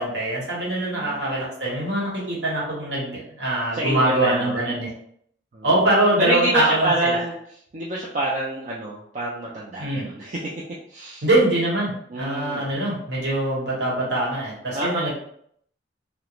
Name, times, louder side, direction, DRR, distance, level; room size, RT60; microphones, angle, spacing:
voice 1, 0.0-4.9 5.6-7.2 9.8-10.0 11.2-15.1, right 1 dB, 60° right, -5 dB, 1.0 m, -23 dB
voice 2, 0.8-1.2 3.7-4.7 5.5-5.7 6.2-7.3 7.7-10.5 10.9-11.2 12.1-12.8 14.7-15.1, right 1 dB, 40° right, -5 dB, 0.4 m, -27 dB
2.4 x 2.0 x 2.9 m, 0.67 s
head